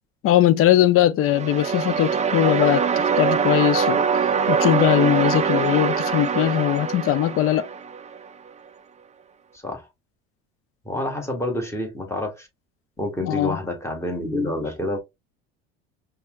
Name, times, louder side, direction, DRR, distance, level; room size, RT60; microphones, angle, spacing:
voice 1, 0.2-4.0 4.5-7.7 13.2-13.6, left 12 dB, 45° left, 0.6 m, -20 dB
sound 1, 1.2-8.2, right 6 dB, 20° right, 0.5 m, -23 dB
voice 2, 9.5-9.9 10.9-12.5 13.0-15.0, left 1 dB, 10° left, 1.7 m, -28 dB
5.4 x 2.4 x 2.4 m
hypercardioid pair, 75°, 32 cm